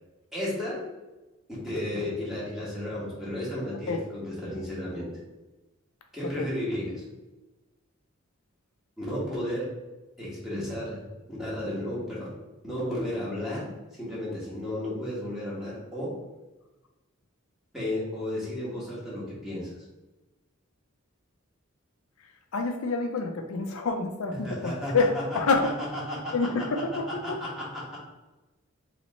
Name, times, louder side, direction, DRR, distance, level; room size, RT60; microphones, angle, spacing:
voice 1, 0.3-0.8 1.5-5.1 6.1-7.0 9.0-9.7 10.2-11.0 11.3-12.3 12.6-16.1 17.7-19.7 24.4-25.5 25.9-26.3 27.2-28.0, left 1 dB, ahead, -8 dB, 1.4 m, -33 dB
voice 2, 22.5-24.6 24.9-25.1 25.3-25.7 26.3-27.4, left 4 dB, 75° left, 5 dB, 0.4 m, -27 dB
3.1 x 3.1 x 4.0 m, 1.1 s
head